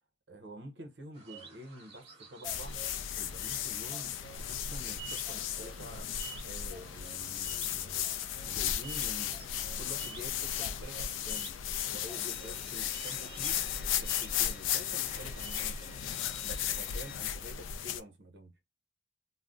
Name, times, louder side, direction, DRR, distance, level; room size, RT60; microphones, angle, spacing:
voice 1, 0.3-8.1 8.4-11.6 11.9-13.6 14.0-16.0 16.4-18.5, equal, 60° right, 0.6 m, -48 dB
sound 1, 1.1-15.9, right 5 dB, 30° right, 0.9 m, -51 dB
sound 2, 2.4-18.0, left 10 dB, 90° left, 0.3 m, -35 dB
Bowed string instrument, 12.1-17.2, left 3 dB, ahead, 1.1 m, -51 dB
2.4 x 2.0 x 3.5 m
head